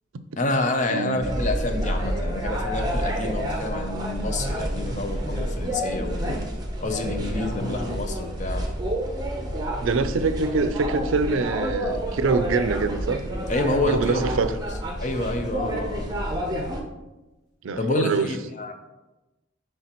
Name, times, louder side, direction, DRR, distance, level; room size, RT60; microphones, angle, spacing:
voice 1, 0.4-6.4 6.8-8.6 13.5-14.3 15.0-16.1 17.8-18.7, left 2 dB, 40° left, 6 dB, 0.5 m, -28 dB
voice 2, 0.9-1.2 9.8-13.2 13.9-14.6 17.6-18.4, right 4 dB, 85° right, 11 dB, 0.4 m, -24 dB
sound 1, 1.2-16.8, equal, 20° right, 0.7 m, -29 dB
sound 2, 2.0-6.1, equal, 55° left, 1.0 m, -46 dB
9.8 x 3.4 x 2.9 m, 1.1 s
head